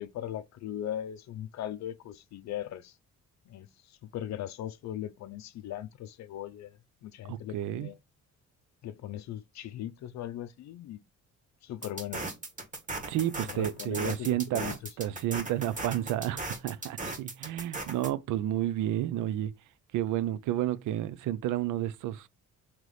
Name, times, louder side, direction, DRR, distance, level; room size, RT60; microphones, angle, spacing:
voice 1, 0.0-2.9 3.5-3.7 4.1-6.7 7.0-8.0 8.8-11.0 11.6-12.2 13.5-14.7, left 11 dB, 65° left, 0.5 m, -39 dB
voice 2, 7.3-7.9 13.1-19.5 19.9-22.3, right 12 dB, 80° right, 0.5 m, -31 dB
sound 1, 11.8-18.1, right 2 dB, 25° right, 1.4 m, -38 dB
3.1 x 3.0 x 3.9 m
cardioid pair, 90°, 30 cm